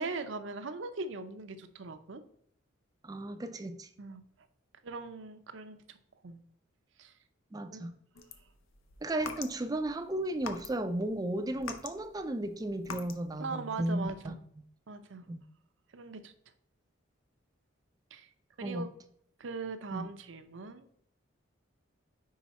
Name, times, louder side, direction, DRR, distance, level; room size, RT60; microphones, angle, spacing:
voice 1, 0.0-2.2 4.0-4.2 4.8-6.0 6.2-6.4 7.0-7.1 7.7-7.9 13.4-14.4 14.9-15.3 15.9-16.3 18.1-18.3 18.6-18.9 19.4-20.8, right 3 dB, 65° right, 9 dB, 0.6 m, -40 dB
voice 2, 3.0-3.9 7.5-7.9 9.0-14.3 15.3-15.4 18.6-18.9 19.9-20.1, right 1 dB, 20° right, 9 dB, 0.4 m, -34 dB
sound 1, 8.2-9.9 10.4-11.0 11.4-13.3, left 5 dB, 85° left, 0.6 m, -43 dB
4.9 x 4.7 x 4.1 m, 0.69 s
head